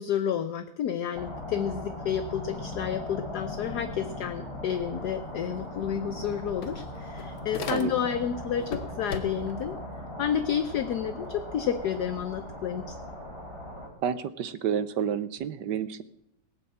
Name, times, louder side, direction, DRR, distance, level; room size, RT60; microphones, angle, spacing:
voice 1, 0.0-9.8 10.2-12.9, left 8 dB, 65° left, 10 dB, 1.2 m, -30 dB
sound 1, 1.1-13.9, left 1 dB, 15° left, 3.3 m, -39 dB
sound 2, 5.6-5.7 6.0-8.2 8.6-9.6, left 5 dB, 85° left, 2.1 m, -39 dB
voice 2, 14.0-16.0, right 8 dB, 70° right, 14 dB, 1.3 m, -29 dB
18.5 x 7.0 x 8.7 m, 0.76 s
omnidirectional pair, 2.1 m